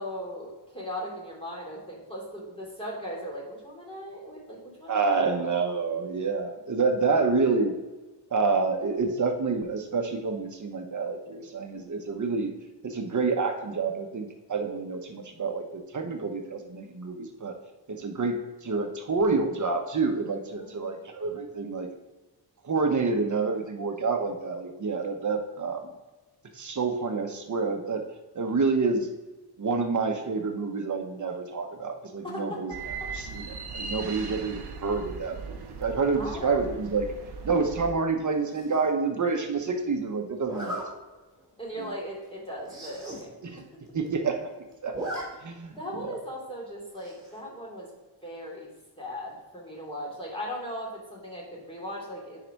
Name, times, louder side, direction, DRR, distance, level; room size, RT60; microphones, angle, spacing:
voice 1, 0.0-5.5 20.6-21.0 32.2-32.6 36.1-36.6 40.6-40.7 41.6-43.3 45.7-47.9 48.2-48.7 49.0-52.4, equal, 15° left, -4 dB, 3.1 m, -38 dB
voice 2, 4.9-7.7 8.3-12.5 12.8-17.6 17.9-21.9 22.6-25.9 26.5-28.0 28.3-29.1 29.6-32.7 33.1-37.1 37.4-40.8 41.8-41.9 43.4-43.6 43.9-44.5 44.8-44.9 45.4-46.2, right 4 dB, 45° right, 4 dB, 1.2 m, -28 dB
sound 1, 32.7-37.9, right 4 dB, 65° right, 1.0 m, -38 dB
Zipper (clothing), 38.5-38.9 40.4-40.8 41.4-41.6 41.9-42.0 42.2-42.3 42.6-43.2 43.6-43.7 43.9-44.4 44.7-45.2 45.6-45.7 47.0-47.4, right 1 dB, 10° right, 2.8 m, -37 dB
9.6 x 5.0 x 4.7 m, 1.2 s
wide cardioid pair, 105°, 42 cm